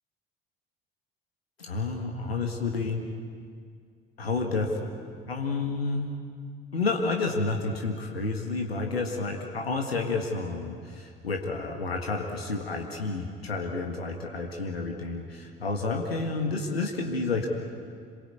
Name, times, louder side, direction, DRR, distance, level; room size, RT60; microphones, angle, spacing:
voice 1, 1.6-3.0 4.2-4.9 5.3-6.1 6.7-17.5, left 3 dB, 85° left, 3 dB, 1.7 m, -30 dB
27.0 x 22.0 x 8.4 m, 2.2 s
figure-of-eight pair, 55°, 30 cm